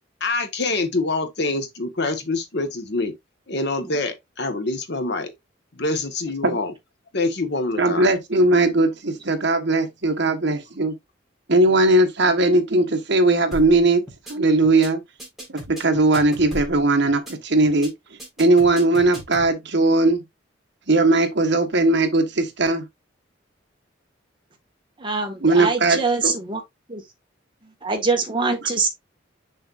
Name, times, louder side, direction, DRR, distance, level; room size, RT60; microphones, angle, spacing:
voice 1, 0.2-3.1 3.5-5.3 5.7-6.7 7.1-8.1, left 3 dB, 60° left, 1.4 m, -25 dB
voice 2, 7.8-10.9 11.5-14.0 14.3-15.0 15.5-17.9 18.4-20.2 20.9-22.8 25.4-26.3 28.6-28.7, right 2 dB, 60° right, 1.3 m, -19 dB
sound 1, 13.5-13.8 14.1-14.3 14.6-14.9 15.2-16.8 17.1-17.3 17.6-17.9 18.2-19.5, equal, ahead, 4.2 m, -36 dB
voice 3, 25.0-26.6 26.9-27.0 27.8-28.9, right 4 dB, 25° right, 1.6 m, -23 dB
6.5 x 6.3 x 2.5 m
head